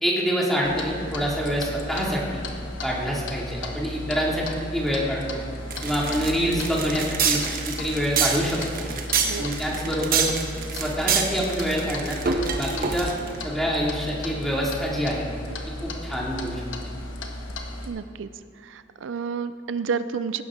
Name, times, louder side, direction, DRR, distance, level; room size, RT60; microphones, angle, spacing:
voice 1, 0.0-2.4 2.8-4.4 4.7-5.4 5.8-8.6 9.4-10.3 10.7-13.1 13.4-15.2 15.8-16.9, equal, ahead, -4 dB, 2.3 m, -26 dB
Clock, 0.6-17.9, left 1 dB, 85° left, 1.3 m, -35 dB
sound 1, 5.7-13.4, right 6 dB, 50° right, 1.1 m, -26 dB
voice 2, 9.2-9.6 17.8-18.3 18.6-20.4, right 6 dB, 85° right, 13 dB, 0.4 m, -30 dB
17.0 x 11.5 x 3.7 m, 2.5 s
head